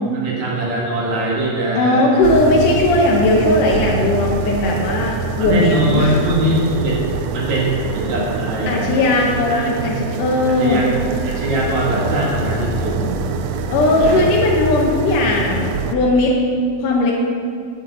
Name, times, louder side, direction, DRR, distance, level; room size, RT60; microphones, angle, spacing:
voice 1, 0.1-2.0 5.4-8.9 9.5-9.8 10.6-11.0 11.2-13.2 13.8-14.3, right 1 dB, 65° right, -4 dB, 2.9 m, -21 dB
voice 2, 1.7-6.6 8.7-10.8 13.7-16.4 16.8-17.1, left 2 dB, 90° left, -2 dB, 2.6 m, -17 dB
sound 1, 2.2-16.0, right 4 dB, 85° right, 1.5 m, -24 dB
10.5 x 6.4 x 7.0 m, 2.3 s
omnidirectional pair, 3.6 m